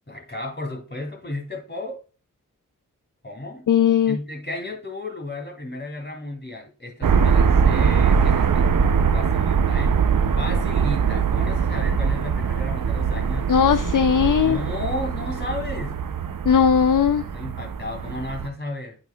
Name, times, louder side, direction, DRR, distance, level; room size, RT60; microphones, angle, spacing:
voice 1, 0.1-2.0 3.2-3.7 4.1-8.7 9.1-10.0 10.4-13.5 14.4-16.0 17.2-19.0, left 2 dB, 35° left, 2.7 m, -33 dB
voice 2, 3.7-4.2 13.5-14.6 16.5-17.2, left 8 dB, 70° left, 0.5 m, -18 dB
sound 1, 7.0-18.5, right 6 dB, 80° right, 0.6 m, -22 dB
8.7 x 5.8 x 2.3 m
wide cardioid pair, 40°, 33 cm